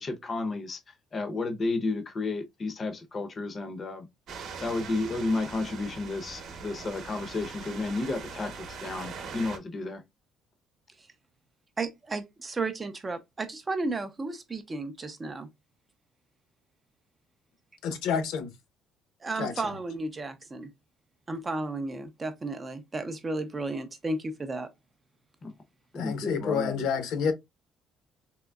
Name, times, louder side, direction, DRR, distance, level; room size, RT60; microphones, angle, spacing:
voice 1, 0.0-4.1 4.6-10.0 25.4-25.5 25.9-26.9, left 3 dB, 25° left, 0.6 m, -32 dB
sound 1, 4.3-9.6, right 5 dB, 45° right, 0.8 m, -41 dB
voice 2, 11.8-15.5 19.2-20.7 21.3-24.7, right 3 dB, 15° right, 0.4 m, -33 dB
voice 3, 17.8-18.5 19.4-19.5 26.0-27.3, left 6 dB, 70° left, 0.8 m, -28 dB
3.6 x 3.0 x 2.2 m
cardioid pair, 175°, 0 cm